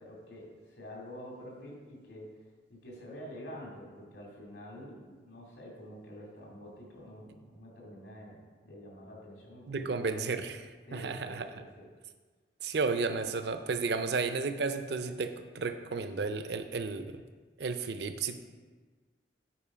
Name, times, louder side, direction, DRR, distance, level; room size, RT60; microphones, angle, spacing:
voice 1, 0.0-10.2 10.9-11.9, equal, 85° left, -3 dB, 2.5 m, -48 dB
voice 2, 9.7-10.6 10.9-11.5 12.6-17.2 17.6-18.4, right 4 dB, 65° right, 9 dB, 0.5 m, -33 dB
8.7 x 4.6 x 5.0 m, 1.4 s
head